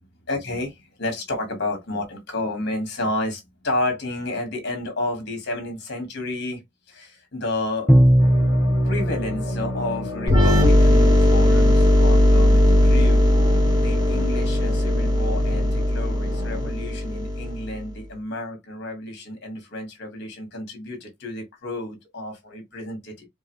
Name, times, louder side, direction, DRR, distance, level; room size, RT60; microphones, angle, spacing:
voice 1, 0.3-6.6 6.9-7.9 8.9-13.3 13.7-23.3, left 2 dB, 55° left, 1.8 m, -31 dB
Bowed string instrument, 7.9-10.7, equal, 5° left, 0.4 m, -20 dB
sound 1, 8.2-16.7, left 3 dB, 70° left, 1.3 m, -35 dB
sound 2, 10.3-17.9, left 1 dB, 20° right, 1.5 m, -18 dB
4.7 x 2.6 x 3.2 m
head